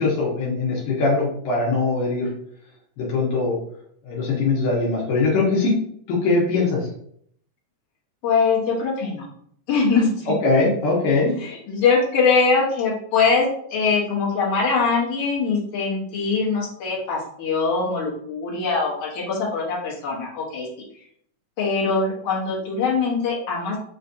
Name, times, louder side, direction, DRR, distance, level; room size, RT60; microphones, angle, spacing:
voice 1, 0.0-2.3 3.0-3.6 4.1-5.7 6.1-6.8 10.4-11.4, left 3 dB, 75° left, -6 dB, 2.5 m, -21 dB
voice 2, 8.2-9.3 9.7-10.3 11.4-20.7 21.6-23.8, left 4 dB, 60° left, -6 dB, 1.8 m, -22 dB
5.6 x 2.4 x 2.6 m, 0.66 s
omnidirectional pair, 3.9 m